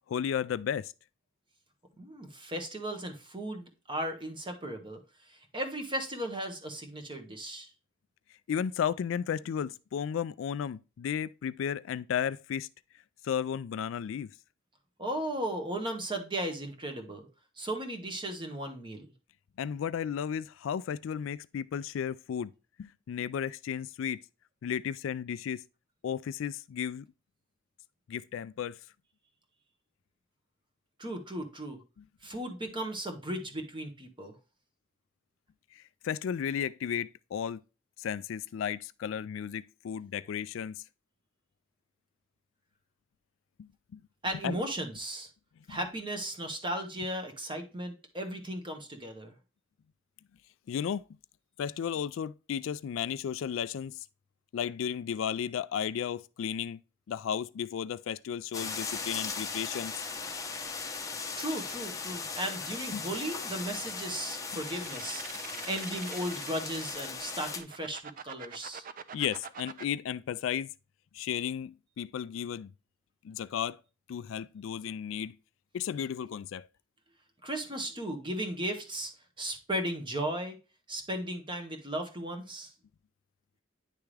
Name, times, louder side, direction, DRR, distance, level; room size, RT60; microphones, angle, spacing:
voice 1, 0.1-0.9 8.5-12.7 13.2-14.3 19.6-22.5 22.8-24.2 24.6-25.6 26.0-27.1 28.1-28.7 36.0-37.6 38.0-40.8 43.6-44.0 44.4-44.6 45.7-45.8 50.7-51.0 51.6-54.0 54.5-56.8 57.1-60.0 60.5-60.7 62.9-63.0 69.1-70.7 71.1-72.7 73.2-73.8 74.1-75.3 75.7-76.7, left 8 dB, 75° left, 0.3 m, -34 dB
voice 2, 2.0-7.7 15.0-17.3 17.6-19.1 31.0-31.8 32.2-34.4 44.2-45.3 45.7-49.3 61.4-65.4 65.7-68.9 77.4-79.1 79.4-80.6 80.9-82.7, right 1 dB, 25° right, 1.2 m, -36 dB
sound 1, 58.5-67.6, left 4 dB, 15° left, 0.8 m, -38 dB
sound 2, 64.4-66.9 67.4-69.8, right 8 dB, 45° right, 0.5 m, -45 dB
10.0 x 3.5 x 3.2 m
head